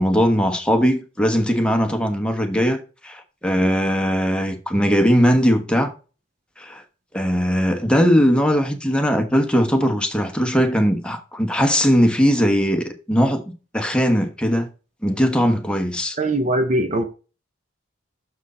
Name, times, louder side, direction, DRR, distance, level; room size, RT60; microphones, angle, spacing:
voice 1, 0.0-5.9 6.6-6.8 7.1-13.4 13.7-14.7 15.0-16.2, equal, 5° left, 1.1 m, -19 dB
voice 2, 16.2-17.0, right 1 dB, 35° right, 0.7 m, -21 dB
6.7 x 6.3 x 4.2 m
head